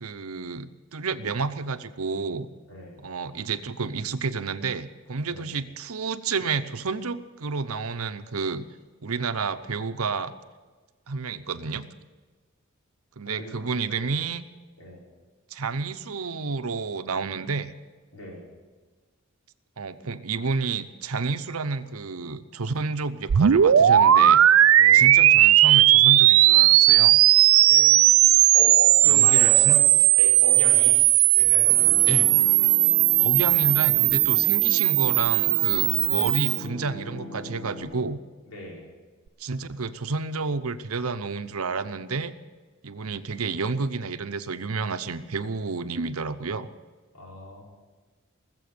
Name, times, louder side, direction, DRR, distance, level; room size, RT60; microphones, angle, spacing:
voice 1, 0.0-2.5 3.0-8.7 9.0-10.3 11.1-11.9 13.2-14.4 15.5-17.7 19.8-24.4 24.9-27.2 29.0-29.8 32.1-32.5 33.2-38.2 39.4-42.3 42.8-46.7, right 4 dB, 85° right, 11 dB, 0.8 m, -30 dB
voice 2, 2.7-3.0 5.3-5.5 13.3-13.5 13.9-14.0 14.8-15.1 18.1-18.5 24.8-25.1 27.7-28.0 28.5-29.9 30.2-31.0 31.4-32.2 38.5-38.9 47.1-47.6, left 1 dB, 80° left, -3 dB, 5.1 m, -36 dB
sound 1, 23.3-36.6, right 13 dB, 70° right, 0.4 m, -17 dB
sound 2, 31.6-37.8, left 1 dB, 30° left, 5.7 m, -39 dB
19.5 x 7.7 x 9.4 m, 1.4 s
head